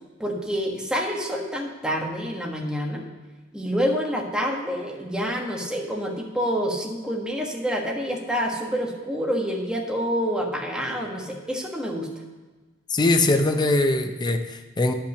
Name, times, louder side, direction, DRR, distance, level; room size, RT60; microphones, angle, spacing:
voice 1, 0.2-3.0 3.5-12.1, equal, 5° right, -1 dB, 1.3 m, -27 dB
voice 2, 12.9-14.9, left 2 dB, 20° left, 6 dB, 0.5 m, -21 dB
10.0 x 5.7 x 6.6 m, 1.3 s
head